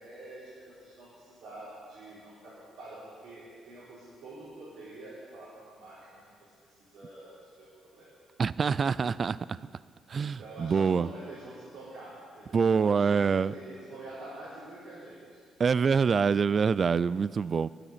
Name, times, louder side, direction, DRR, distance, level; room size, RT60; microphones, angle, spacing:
voice 1, 0.0-8.1 10.3-15.4, right 2 dB, 80° right, -10 dB, 4.5 m, -46 dB
voice 2, 8.4-9.7 10.1-11.1 12.5-13.5 15.6-17.7, right 6 dB, 45° right, 19 dB, 0.3 m, -25 dB
11.0 x 9.9 x 8.6 m, 2.1 s
cardioid pair, 90°, 0 cm